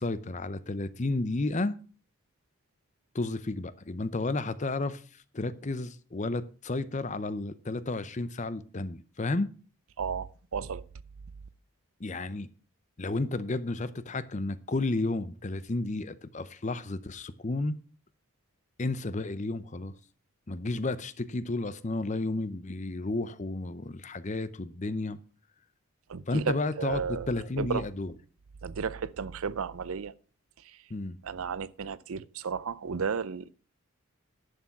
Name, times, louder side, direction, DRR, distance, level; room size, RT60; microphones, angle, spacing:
voice 1, 0.0-1.8 3.1-5.0 5.3-9.5 12.0-12.5 13.0-17.8 18.8-19.9 20.5-25.2 26.3-28.1 30.9-31.2, left 2 dB, 30° left, 0.6 m, -32 dB
voice 2, 10.0-10.8 26.1-27.3 27.6-27.9 28.6-30.1 30.6-30.8 31.2-33.5, right 6 dB, 70° right, 0.5 m, -33 dB
11.0 x 6.6 x 5.9 m
head